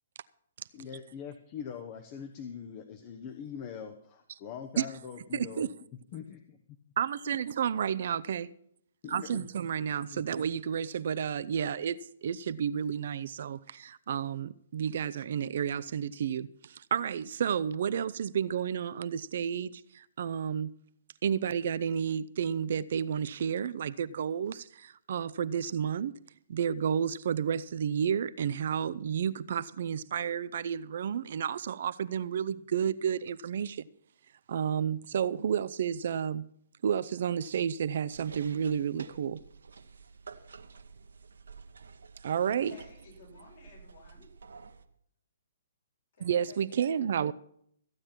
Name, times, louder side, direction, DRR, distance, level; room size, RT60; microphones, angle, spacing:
voice 1, 0.7-5.7 6.1-6.4 7.3-7.4 9.0-9.5 10.1-10.2, left 7 dB, 35° left, 1.0 m, -42 dB
voice 2, 5.3-5.7 7.0-8.5 9.1-20.7 21.2-26.1 26.5-33.9 34.5-36.4 36.8-39.4 42.2-42.7 46.2-47.3, right 8 dB, 55° right, 0.5 m, -31 dB
sound 1, 38.0-44.8, right 5 dB, 75° right, 1.0 m, -51 dB
voice 3, 42.6-44.3 46.1-47.1, left 3 dB, 55° left, 7.6 m, -54 dB
14.5 x 8.8 x 6.0 m
figure-of-eight pair, 130°, 0 cm